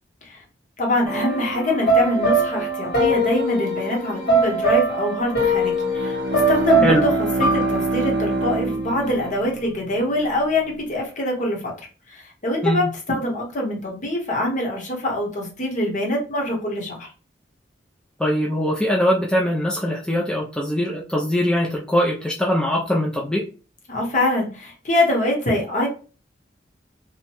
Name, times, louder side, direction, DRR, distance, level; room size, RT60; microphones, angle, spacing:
voice 1, 0.8-11.7 12.1-17.1 23.9-25.9, left 1 dB, 45° left, -1 dB, 0.9 m, -24 dB
sound 1, 1.0-9.3, right 1 dB, 65° left, 1.5 m, -22 dB
Bowed string instrument, 5.7-10.3, right 2 dB, 85° right, 0.4 m, -26 dB
voice 2, 18.2-23.5, equal, 5° left, -2 dB, 0.3 m, -22 dB
2.8 x 2.1 x 2.9 m, 0.36 s
head